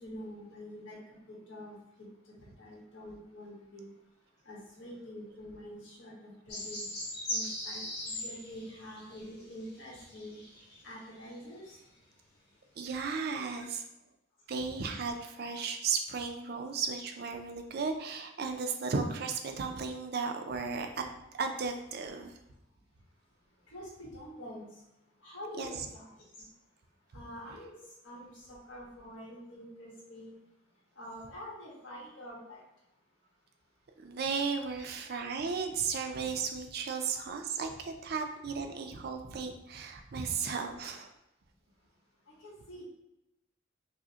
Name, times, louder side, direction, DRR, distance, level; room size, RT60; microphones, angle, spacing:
voice 1, 0.0-1.7 2.3-3.9 4.4-6.1 6.5-6.8 7.3-10.4 10.8-11.8 13.4-13.7 23.7-24.7 25.2-26.1 26.4-26.5 27.1-27.7 28.0-30.4 31.0-32.6 34.8-34.9 42.4-42.8, equal, 75° left, -4 dB, 1.2 m, -46 dB
sound 1, 6.5-10.8 11.3-11.4, left 1 dB, 55° left, 1.4 m, -39 dB
voice 2, 12.8-13.8 14.5-21.0 21.3-22.3 25.6-25.7 34.0-41.1, right 5 dB, 50° right, 5 dB, 0.4 m, -35 dB
4.8 x 2.1 x 2.8 m, 0.90 s
head